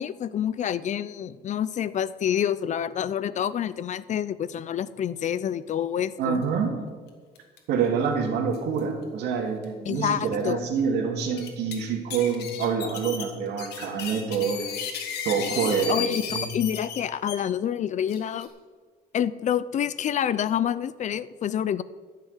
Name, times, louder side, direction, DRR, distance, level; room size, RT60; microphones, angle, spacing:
voice 1, 0.0-6.4 9.9-10.6 15.9-18.5 19.1-21.8, left 9 dB, 45° left, 17 dB, 0.6 m, -27 dB
voice 2, 6.2-6.8 7.7-14.7 15.2-16.5, right 6 dB, 80° right, 2 dB, 2.6 m, -26 dB
sound 1, 7.4-7.6 7.8-7.9 8.5-8.8 9.6-9.7 10.2-10.3 11.2-11.7 12.1-17.4 18.1-18.5, left 7 dB, 75° left, 2.2 m, -34 dB
13.0 x 6.7 x 8.2 m, 1.5 s
cardioid pair, 110°, 17 cm